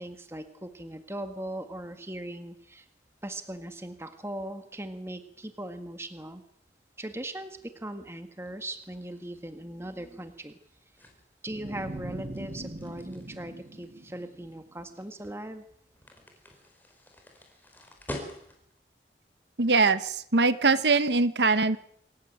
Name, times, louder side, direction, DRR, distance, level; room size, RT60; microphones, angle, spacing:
voice 1, 0.0-2.9 3.2-6.4 7.0-10.6 11.4-15.6, right 1 dB, 15° right, 8 dB, 1.7 m, -39 dB
sound 1, 8.4-18.8, left 1 dB, 10° left, 4.7 m, -47 dB
sound 2, 11.5-14.7, right 1 dB, 50° right, 1.5 m, -41 dB
voice 2, 19.6-21.8, right 3 dB, 80° right, 13 dB, 1.2 m, -22 dB
26.5 x 15.5 x 9.3 m, 0.72 s
head